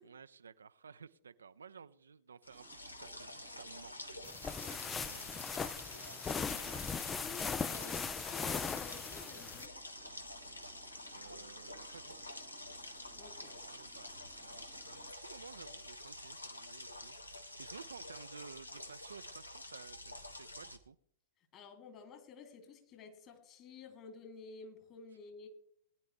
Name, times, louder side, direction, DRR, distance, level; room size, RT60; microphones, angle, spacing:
voice 1, 0.0-4.4 4.7-5.2 6.5-6.9 11.1-12.3 13.5-21.0, right 6 dB, 70° right, 13 dB, 0.5 m, -55 dB
sound 1, 2.4-20.8, left 1 dB, 80° left, 1.3 m, -49 dB
sound 2, 2.5-15.1, right 12 dB, 30° right, 0.9 m, -64 dB
sound 3, 4.2-9.7, left 6 dB, 15° left, 0.4 m, -39 dB
voice 2, 6.1-9.7 13.1-13.5 21.5-25.5, left 5 dB, 30° left, 5 dB, 2.8 m, -52 dB
20.5 x 10.5 x 3.3 m, 0.64 s
figure-of-eight pair, 100°, 0 cm